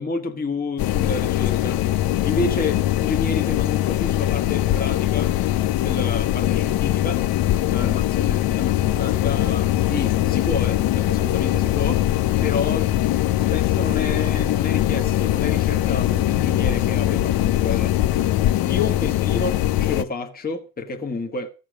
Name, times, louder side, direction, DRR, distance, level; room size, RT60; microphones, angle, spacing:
voice 1, 0.0-1.8 2.2-5.4 5.8-7.2 7.7-12.1 12.4-12.9 13.5-17.9 18.6-21.5, left 3 dB, 20° left, 1.7 m, -29 dB
sound 1, 0.8-20.0, left 14 dB, 50° left, 0.8 m, -22 dB
sound 2, 8.7-18.5, left 13 dB, 75° left, 1.5 m, -29 dB
14.0 x 7.5 x 6.4 m
supercardioid pair, 90°, 45 cm